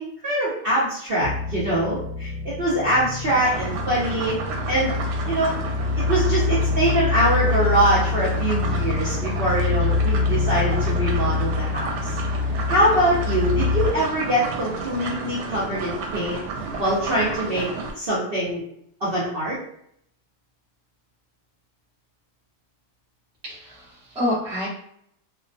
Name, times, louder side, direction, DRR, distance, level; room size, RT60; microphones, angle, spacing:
voice 1, 0.0-4.4 4.7-4.9 5.2-5.6 6.0-12.2 12.7-16.4 16.8-17.7 18.0-18.6 19.0-19.6, right 1 dB, 55° right, -8 dB, 0.6 m, -23 dB
sound 1, 1.2-13.9, left 4 dB, 70° left, 1.0 m, -25 dB
sound 2, 3.2-17.9, right 3 dB, 85° right, 1.2 m, -32 dB
voice 2, 23.4-24.7, left 1 dB, 10° right, -7 dB, 0.4 m, -27 dB
2.7 x 2.2 x 2.5 m, 0.70 s
omnidirectional pair, 1.8 m